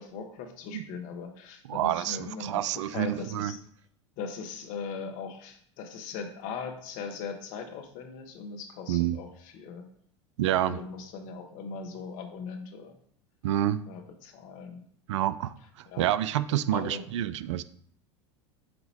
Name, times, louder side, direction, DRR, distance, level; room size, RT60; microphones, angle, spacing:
voice 1, 0.0-3.6 4.2-9.9 10.6-12.9 13.9-14.8 15.9-16.1 16.7-17.1, left 5 dB, 55° left, 5 dB, 1.2 m, -39 dB
voice 2, 1.7-3.5 8.9-9.2 10.4-10.8 13.4-13.8 15.1-15.5 16.0-17.6, right 12 dB, 80° right, 15 dB, 0.4 m, -28 dB
7.9 x 2.9 x 4.1 m, 0.63 s
hypercardioid pair, 85°, 15 cm